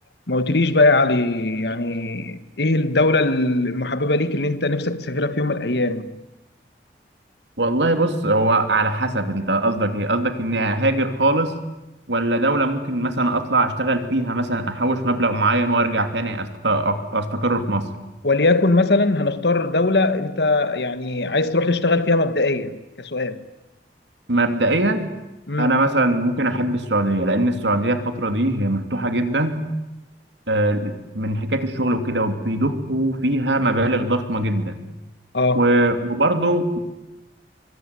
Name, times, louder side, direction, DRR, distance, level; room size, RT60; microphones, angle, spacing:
voice 1, 0.3-6.1 18.2-23.4 25.5-25.8 35.3-35.8, left 2 dB, 70° left, 1.5 m, -20 dB
voice 2, 7.6-11.6 12.1-17.9 24.3-25.1 25.6-29.7 30.5-34.8 35.5-36.8, right 2 dB, 85° right, 2.9 m, -21 dB
24.5 x 24.0 x 9.8 m
head